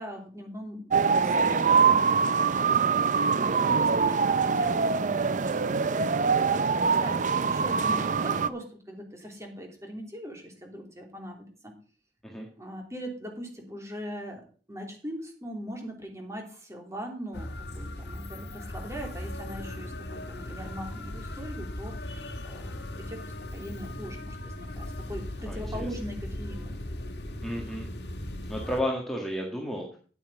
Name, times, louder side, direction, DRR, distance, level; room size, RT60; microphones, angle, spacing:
voice 1, 0.0-11.7 12.6-26.8, equal, 15° right, 2 dB, 3.0 m, -41 dB
sound 1, 0.9-8.5, right 5 dB, 45° right, 0.5 m, -24 dB
voice 2, 3.4-3.8 12.2-12.5 25.5-25.9 27.4-27.9 28.5-30.0, equal, ahead, -2 dB, 1.8 m, -33 dB
sound 2, 17.3-28.8, left 1 dB, 70° left, 1.5 m, -38 dB
10.0 x 8.6 x 4.8 m, 0.39 s
head